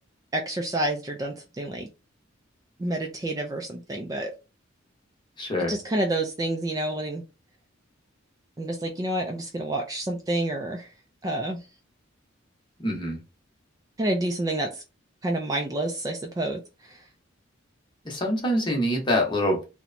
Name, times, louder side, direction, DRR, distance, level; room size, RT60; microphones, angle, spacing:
voice 1, 0.3-1.9 2.8-4.3 5.7-7.2 8.6-10.9 11.2-11.6 14.0-14.8 15.2-17.0, right 1 dB, 20° right, 3 dB, 0.3 m, -29 dB
voice 2, 5.4-5.7 12.8-13.2 18.0-19.6, equal, 25° left, 1 dB, 0.8 m, -25 dB
2.8 x 2.1 x 2.5 m, 0.29 s
head